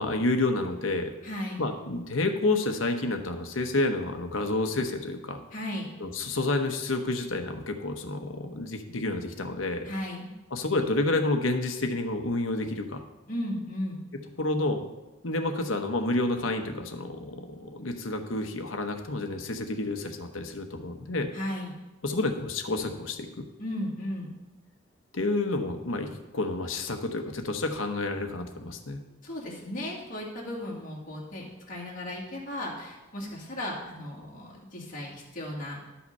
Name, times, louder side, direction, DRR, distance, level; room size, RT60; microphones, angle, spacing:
voice 1, 0.0-1.1 1.6-5.4 6.0-9.9 10.5-13.0 14.4-14.9 15.2-21.3 22.0-23.4 25.1-29.0, left 2 dB, 75° left, 5 dB, 1.0 m, -29 dB
voice 2, 1.2-1.6 5.5-5.9 9.8-10.3 13.3-14.0 21.3-21.8 23.6-24.3 29.2-35.8, left 1 dB, 45° left, -3 dB, 2.3 m, -35 dB
11.5 x 5.8 x 5.5 m, 1.1 s
head